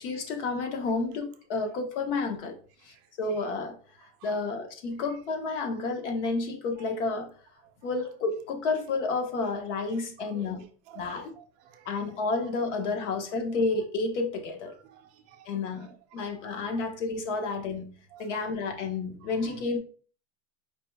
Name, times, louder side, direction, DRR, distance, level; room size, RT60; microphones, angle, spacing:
voice 1, 0.0-2.5 2.8-3.8 4.2-7.3 7.8-10.6 10.9-11.3 11.8-14.7 15.4-17.9 18.2-19.8, left 3 dB, 75° left, 1.4 m, -30 dB
voice 2, 4.2-4.6 6.8-6.9 10.3-12.0 14.9-15.5 15.8-16.2 18.1-18.2 19.0-19.1, right 9 dB, 35° right, 0.4 m, -52 dB
4.9 x 2.4 x 4.6 m
supercardioid pair, 170°, 36 cm